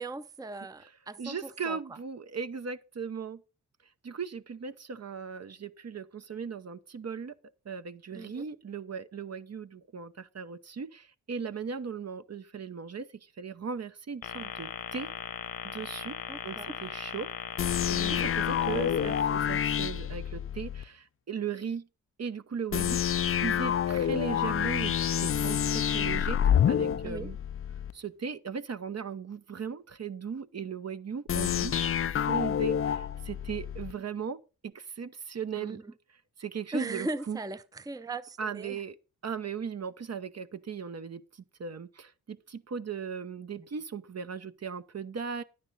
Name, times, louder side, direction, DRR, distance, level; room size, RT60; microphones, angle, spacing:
voice 1, 0.0-1.8 8.1-8.5 16.3-16.8 18.0-18.3 27.0-27.3 35.6-35.9 36.7-38.8, right 2 dB, 10° right, 0.7 m, -38 dB
voice 2, 1.2-3.4 4.0-7.4 7.6-15.1 15.6-16.2 16.4-17.3 17.9-21.9 22.2-27.4 27.9-35.8 36.4-37.4 38.4-39.0 39.2-45.4, right 6 dB, 50° right, 0.9 m, -38 dB
sound 1, 14.2-19.2, left 8 dB, 75° left, 1.3 m, -39 dB
sound 2, 17.6-20.9 22.7-27.9 31.3-33.9, left 9 dB, 40° left, 0.4 m, -28 dB
10.0 x 9.7 x 4.0 m
cardioid pair, 60°, 34 cm